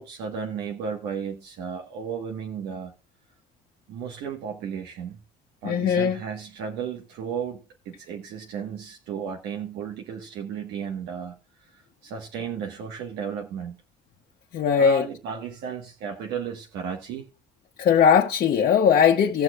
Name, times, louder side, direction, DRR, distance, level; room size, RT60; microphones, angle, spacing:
voice 1, 0.0-2.9 3.9-5.2 5.6-7.6 7.8-11.4 11.7-13.8 14.8-17.3, right 7 dB, 85° right, 1.7 m, -34 dB
voice 2, 5.6-6.2 14.5-15.0 17.8-19.4, left 7 dB, 55° left, 1.2 m, -19 dB
18.5 x 6.4 x 2.5 m
cardioid pair, 110°, 17 cm